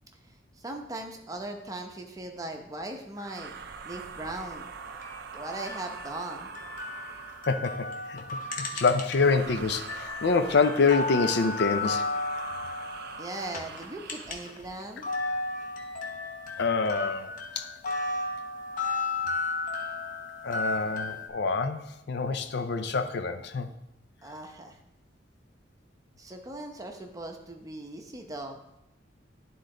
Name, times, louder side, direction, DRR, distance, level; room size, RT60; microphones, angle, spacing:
voice 1, 0.6-3.5 3.8-4.7 5.3-6.5 13.2-15.1 24.2-24.8 26.2-28.6, right 2 dB, 20° right, 3 dB, 0.8 m, -39 dB
sound 1, 3.1-7.7 9.1-14.5, right 6 dB, 55° right, 0.5 m, -43 dB
sound 2, 4.9-9.4 9.8-14.6 14.9-21.3, left 3 dB, 45° left, 1.0 m, -34 dB
voice 2, 7.5-12.1 16.6-17.7 20.4-23.7, left 4 dB, 60° left, 9 dB, 0.5 m, -26 dB
11.0 x 3.9 x 3.8 m, 0.87 s
head